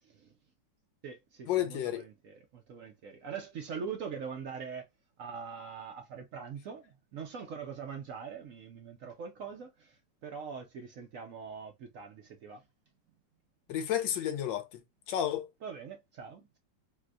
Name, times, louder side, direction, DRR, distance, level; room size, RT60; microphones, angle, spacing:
voice 1, 0.0-0.3 1.0-4.9 5.2-12.6 15.6-16.6, right 6 dB, 70° right, 0.8 m, -43 dB
voice 2, 1.5-2.0 13.7-14.8 15.1-15.5, left 11 dB, 90° left, 1.3 m, -31 dB
4.3 x 2.1 x 2.4 m
omnidirectional pair, 2.0 m